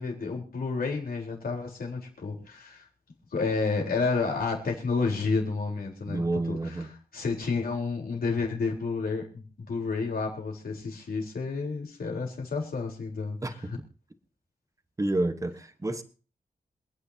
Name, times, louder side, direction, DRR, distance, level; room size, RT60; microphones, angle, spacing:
voice 1, 0.0-2.8 3.3-6.8 7.1-13.7, left 4 dB, 75° left, 0 dB, 4.1 m, -30 dB
voice 2, 6.1-6.9 13.4-13.7 15.0-16.0, right 2 dB, 20° right, 9 dB, 1.2 m, -29 dB
27.5 x 9.8 x 2.8 m, 0.37 s
wide cardioid pair, 140°, 15 cm